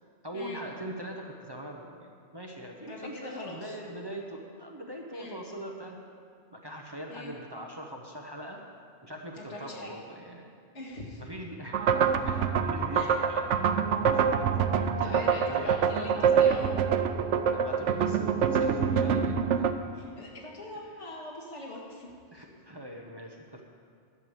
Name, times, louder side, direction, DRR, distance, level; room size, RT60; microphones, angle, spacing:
voice 1, 0.2-6.0 6.5-8.6 9.0-10.5 11.2-16.6 17.5-19.7 22.3-23.6, right 1 dB, 25° right, 0 dB, 0.8 m, -42 dB
voice 2, 2.8-3.7 5.1-5.4 7.1-7.3 9.4-10.0 10.7-11.2 12.9-13.2 14.7-16.7 19.9-22.4, left 1 dB, 85° left, -3 dB, 2.2 m, -42 dB
sound 1, 11.7-19.7, right 7 dB, 90° right, 0.9 m, -25 dB
11.0 x 6.8 x 7.2 m, 2.2 s
omnidirectional pair, 1.2 m